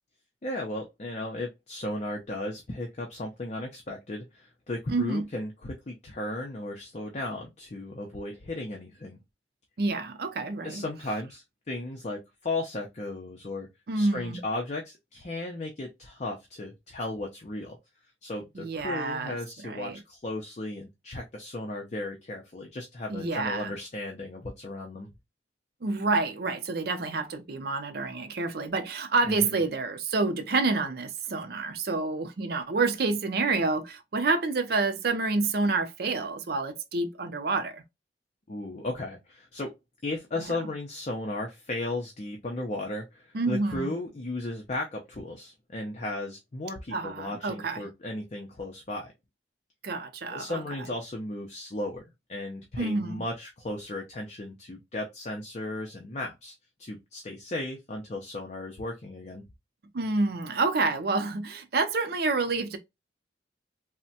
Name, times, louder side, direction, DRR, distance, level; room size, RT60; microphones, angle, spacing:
voice 1, 0.4-9.2 10.6-13.7 13.9-17.8 18.2-25.1 29.4-29.6 38.5-39.7 40.0-49.1 50.3-56.5 56.8-59.4, left 2 dB, 40° left, 0.5 m, -35 dB
voice 2, 4.9-5.3 9.8-10.8 13.9-14.4 18.5-19.4 19.6-20.0 23.1-23.7 25.8-37.8 40.4-40.5 43.3-43.9 46.9-47.8 49.8-50.9 52.8-53.2 59.9-62.8, right 3 dB, 60° right, 0.5 m, -28 dB
3.3 x 2.1 x 2.7 m
head